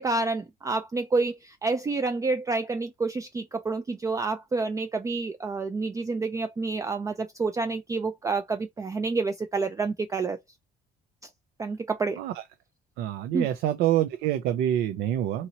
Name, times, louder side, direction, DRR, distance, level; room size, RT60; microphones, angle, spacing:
voice 1, 0.0-10.4 11.6-12.2 13.3-13.5, right 3 dB, 20° right, 0.3 m, -28 dB
voice 2, 13.0-15.5, right 12 dB, 80° right, 0.5 m, -26 dB
2.8 x 2.8 x 2.8 m
cardioid pair, 110°, 17 cm